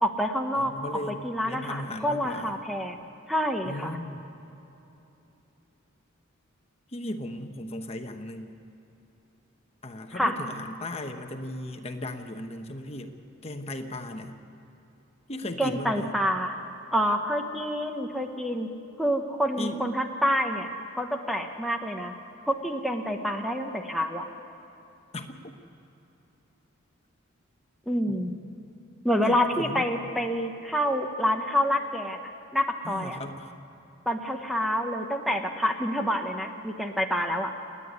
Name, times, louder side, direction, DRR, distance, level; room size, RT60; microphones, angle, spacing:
voice 1, 0.0-0.7 1.2-3.0 3.3-4.0 10.1-10.3 15.6-16.6 16.9-18.7 19.0-20.7 21.0-22.1 22.5-24.3 27.9-28.4 29.0-32.2 32.5-33.2 34.1-37.5, equal, ahead, 3 dB, 1.0 m, -27 dB
voice 2, 0.6-2.5 3.6-4.2 6.9-8.6 9.8-13.1 13.4-14.4 15.3-16.2 19.6-19.8 25.1-25.5 28.1-28.4 29.2-29.8 32.8-33.5, left 1 dB, 30° left, 6 dB, 1.0 m, -36 dB
28.5 x 9.8 x 9.6 m, 2.9 s
head